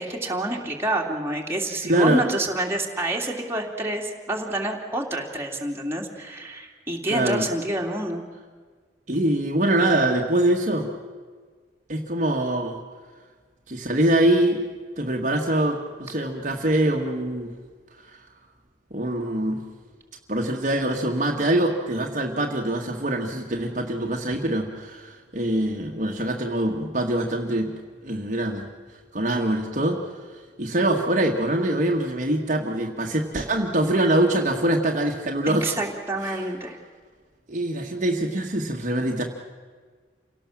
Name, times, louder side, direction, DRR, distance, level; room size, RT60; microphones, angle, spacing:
voice 1, 0.0-8.2 35.6-36.8, right 1 dB, 15° right, 0 dB, 2.8 m, -28 dB
voice 2, 1.8-2.3 7.1-7.5 9.1-10.9 11.9-12.8 13.7-14.6 15.0-17.5 18.0-18.1 18.9-19.6 20.3-27.7 28.0-28.7 29.1-30.0 30.6-35.7 36.2-36.4 37.5-39.2, right 1 dB, 45° right, 1 dB, 1.8 m, -24 dB
28.5 x 18.0 x 7.4 m, 1.5 s
head